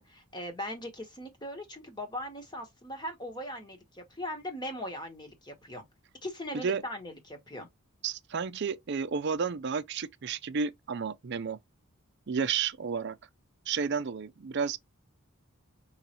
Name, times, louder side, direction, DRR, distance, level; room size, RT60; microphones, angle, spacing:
voice 1, 0.1-5.8 6.2-7.7, left 1 dB, 20° left, 1.2 m, -39 dB
voice 2, 8.0-11.6 12.3-13.2 13.7-14.8, right 6 dB, 50° right, 0.4 m, -31 dB
5.3 x 3.1 x 2.9 m
head